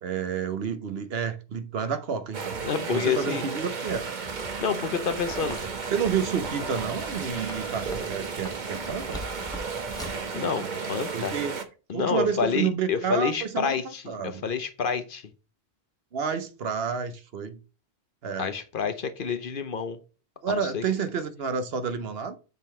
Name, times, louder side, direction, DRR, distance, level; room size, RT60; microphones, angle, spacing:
voice 1, 0.0-4.1 5.6-9.2 11.1-11.6 11.9-14.4 16.1-17.6 18.2-18.5 20.4-22.4, right 6 dB, 65° right, 1.0 m, -30 dB
sound 1, 2.3-11.6, right 5 dB, 45° right, 1.1 m, -34 dB
sound 2, 2.5-2.9 3.3-3.4 3.7-6.5 6.8-8.0 8.3-8.4, right 4 dB, 85° right, 2.1 m, -49 dB
voice 2, 2.6-3.4 4.6-5.6 10.3-11.4 11.9-15.3 18.4-20.0 20.5-20.8, left 6 dB, 55° left, 0.9 m, -28 dB
Writing, 5.1-10.3, equal, 5° left, 1.3 m, -42 dB
7.5 x 3.8 x 4.3 m
omnidirectional pair, 1.1 m